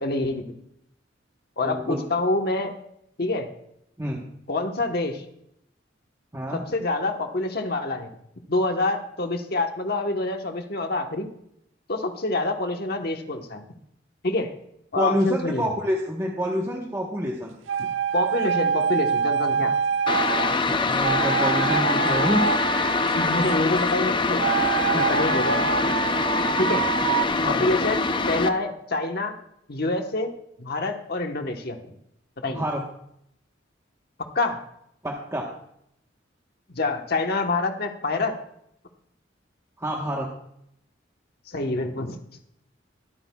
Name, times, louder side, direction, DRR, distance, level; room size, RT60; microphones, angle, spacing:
voice 1, 0.0-0.4 1.6-2.7 3.2-3.5 4.5-5.2 6.5-8.1 8.5-11.3 11.9-13.6 14.2-14.5 14.9-15.7 18.1-19.7 23.1-25.9 26.6-26.8 27.4-29.3 29.7-31.8 32.4-32.6 34.3-34.6 36.7-38.4 41.5-42.2, left 2 dB, 55° left, 4 dB, 1.2 m, -26 dB
voice 2, 1.6-2.0 4.0-4.3 6.3-6.6 15.0-17.6 20.4-22.5 24.9-25.0 27.4-27.7 32.5-32.8 35.0-35.5 39.8-40.3, equal, 15° right, -1 dB, 1.1 m, -27 dB
sound 1, 17.7-20.6 21.0-23.7 24.4-27.3, right 6 dB, 90° right, 0.4 m, -25 dB
sound 2, 20.1-28.5, left 3 dB, 25° left, 0.5 m, -24 dB
23.0 x 8.9 x 2.3 m, 0.73 s
head